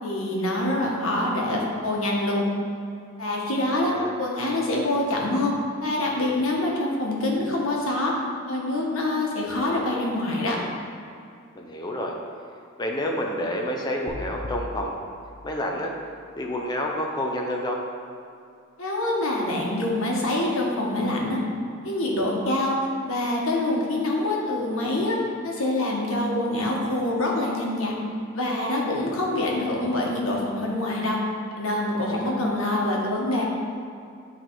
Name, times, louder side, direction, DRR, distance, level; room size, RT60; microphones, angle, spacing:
voice 1, 0.0-2.4 3.2-5.5 5.8-8.1 8.5-10.6 18.8-21.4 21.8-22.7 23.0-25.2 25.4-27.9 28.3-31.2 31.6-33.4, left 1 dB, 90° left, -2 dB, 1.3 m, -25 dB
voice 2, 3.7-4.1 11.5-12.1 12.8-15.0 15.4-15.9 16.4-17.8 31.9-32.3, left 1 dB, 20° left, 0 dB, 0.6 m, -29 dB
sound 1, 14.1-16.2, left 1 dB, 45° left, 0.9 m, -39 dB
8.6 x 4.0 x 4.6 m, 2.4 s
head